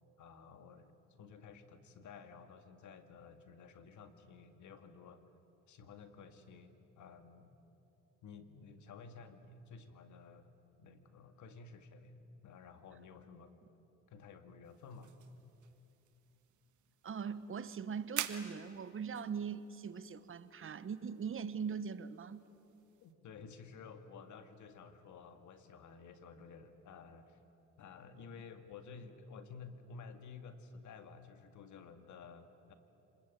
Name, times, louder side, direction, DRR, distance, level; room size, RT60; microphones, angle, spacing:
voice 1, 0.2-5.2 5.7-7.5 8.2-10.5 10.8-12.1 12.4-13.5 14.1-15.1 23.0-27.4 27.8-32.7, left 5 dB, 75° left, 8 dB, 2.0 m, -53 dB
sound 1, 14.6-23.1, right 11 dB, 75° right, 1.6 m, -49 dB
voice 2, 17.0-22.4, right 6 dB, 45° right, 14 dB, 1.2 m, -41 dB
27.0 x 20.5 x 9.3 m, 2.8 s
cardioid pair, 90°, 30 cm